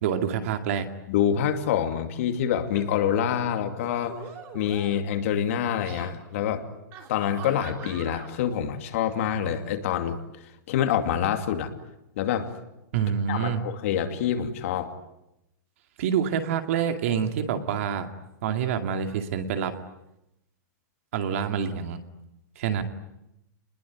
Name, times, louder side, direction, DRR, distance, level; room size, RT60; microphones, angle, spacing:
voice 1, 0.0-0.9 12.9-13.6 16.0-18.1 18.4-19.7 21.1-22.0 22.6-22.8, right 8 dB, 45° right, 7 dB, 2.4 m, -27 dB
voice 2, 1.1-4.2 4.5-6.6 7.1-10.2 10.7-11.7 12.2-12.5 13.3-14.9, left 9 dB, 45° left, 7 dB, 2.5 m, -26 dB
sound 1, 2.7-3.0 3.7-5.2 5.6-6.1 6.9-8.3, right 7 dB, 25° right, 3.2 m, -43 dB
29.5 x 21.0 x 9.5 m, 0.88 s
supercardioid pair, 175°, 10 cm